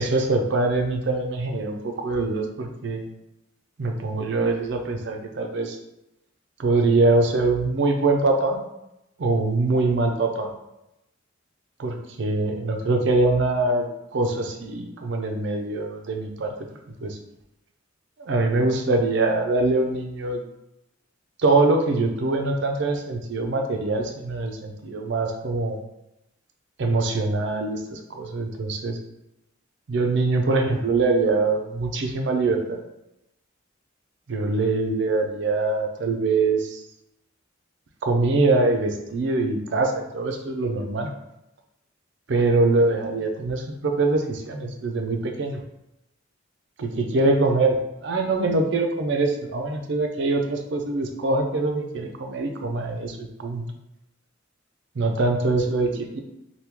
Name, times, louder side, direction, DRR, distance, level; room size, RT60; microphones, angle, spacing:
voice 1, 0.0-3.0 3.8-5.8 6.6-8.6 9.2-10.5 11.8-13.9 14.1-16.5 17.0-17.2 18.2-20.4 21.4-25.8 26.8-29.0 29.9-32.8 34.3-36.8 38.0-41.1 42.3-45.6 46.8-53.7 55.0-56.2, right 3 dB, 60° right, 4 dB, 0.4 m, -23 dB
2.9 x 2.2 x 3.5 m, 0.88 s
head